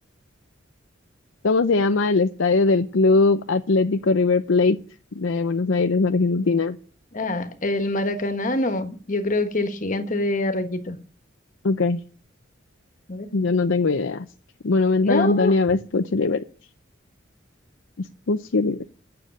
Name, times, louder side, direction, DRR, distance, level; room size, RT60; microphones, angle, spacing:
voice 1, 1.4-4.8 5.2-6.8 11.6-12.0 13.3-14.3 14.6-16.4 18.0-18.8, left 3 dB, 85° left, 0.7 m, -20 dB
voice 2, 7.1-11.0 13.1-13.3 15.0-15.6, left 2 dB, 40° left, 1.4 m, -25 dB
9.6 x 6.9 x 8.9 m
head